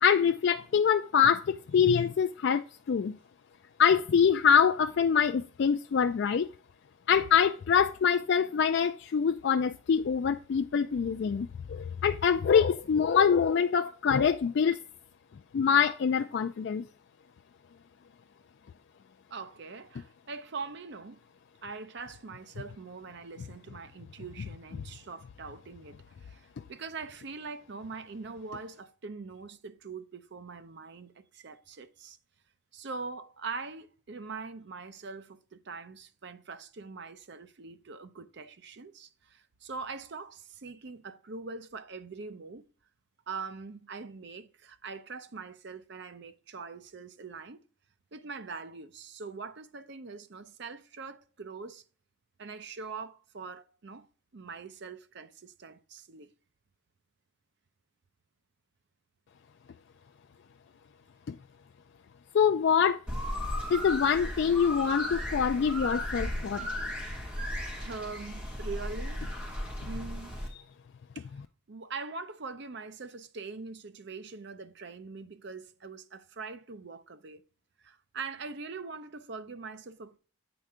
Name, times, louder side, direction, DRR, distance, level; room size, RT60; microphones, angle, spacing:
voice 1, 0.0-3.2 3.8-6.5 7.1-14.8 15.5-16.8 61.3-61.4 62.3-63.0 63.7-66.7, left 7 dB, 55° left, 0.3 m, -25 dB
voice 2, 19.3-21.2 21.6-32.2 32.7-42.6 43.3-47.6 48.1-51.8 52.4-54.1 54.3-56.3 67.8-69.6 69.8-70.4 71.1-71.3 71.7-77.4 77.8-80.2, right 4 dB, 55° right, 0.6 m, -43 dB
sound 1, 63.1-70.5, left 1 dB, 5° right, 2.0 m, -35 dB
7.9 x 4.4 x 3.6 m
head